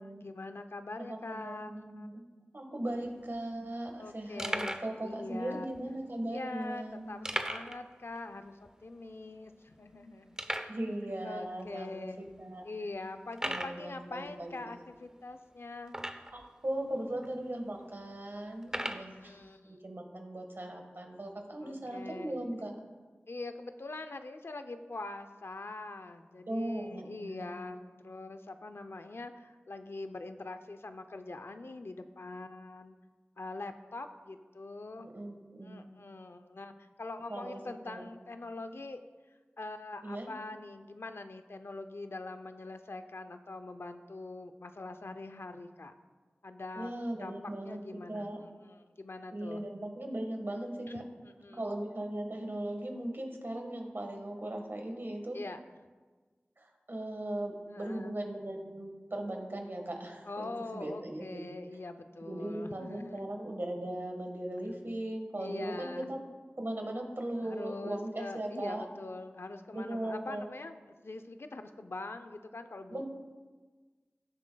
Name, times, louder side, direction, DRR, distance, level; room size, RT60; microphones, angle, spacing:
voice 1, 0.0-2.1 4.0-5.7 6.3-10.4 11.2-12.3 12.6-16.0 17.0-17.2 18.9-19.8 21.6-22.3 22.7-22.8 23.3-33.0 33.4-35.1 35.6-39.0 39.6-45.9 46.4-49.6 50.9-51.6 55.3-55.9 57.7-58.1 60.3-63.3 65.4-66.1 67.4-73.0, left 2 dB, 80° left, 8 dB, 0.5 m, -43 dB
voice 2, 1.0-2.2 2.5-7.0 10.7-12.6 13.4-14.7 16.3-19.4 19.6-22.7 26.5-27.7 35.0-35.9 37.3-37.6 37.9-38.0 40.0-40.3 46.8-47.8 48.1-48.4 49.3-51.0 51.5-55.4 56.6-61.5 62.2-66.2 66.6-68.8 69.7-70.4 72.9-73.0, right 1 dB, 65° right, 3 dB, 1.5 m, -38 dB
sound 1, 2.9-3.0 3.2-3.4 3.9-4.0 4.4-4.9 5.7-5.8 7.2-7.8 8.1-8.2 8.7-8.8 9.3-9.4 10.4-10.8 11.6-11.7 12.3-12.4 13.3-13.8 15.9-16.4 17.2-17.3 18.6-19.1, right 1 dB, 15° right, 0.6 m, -36 dB
16.0 x 7.3 x 2.3 m, 1.4 s
wide cardioid pair, 45°, 4 cm